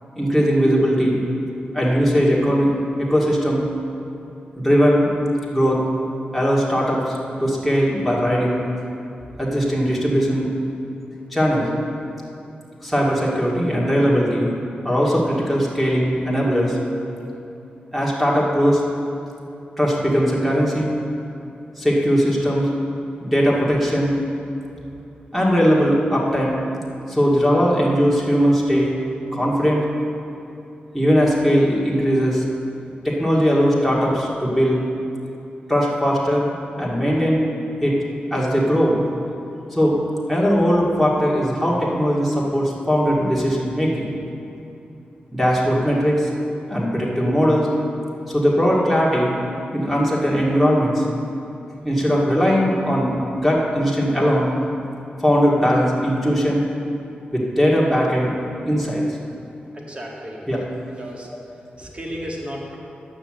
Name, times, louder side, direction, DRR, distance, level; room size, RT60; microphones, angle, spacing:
voice 1, 0.2-1.2 1.7-3.6 4.6-5.1 5.5-5.8 6.3-8.6 9.4-10.5 11.3-11.7 12.8-14.5 14.8-16.8 17.9-18.8 19.8-20.9 21.8-22.7 23.2-24.1 25.3-26.6 27.1-28.9 29.3-29.8 30.9-32.4 33.0-34.8 35.7-37.5 37.8-38.0 38.3-39.0 39.7-39.9 40.3-44.1 45.3-46.3 46.7-47.7 48.3-49.4 49.7-51.0 51.8-54.5 55.2-56.6 57.3-58.3 58.6-59.0 60.5-60.6, equal, ahead, -5 dB, 2.1 m, -19 dB
voice 2, 59.7-60.4 61.0-61.3 61.8-62.8, equal, 35° right, -3 dB, 2.1 m, -33 dB
9.8 x 6.4 x 7.5 m, 2.7 s
wide cardioid pair, 85°, 3 cm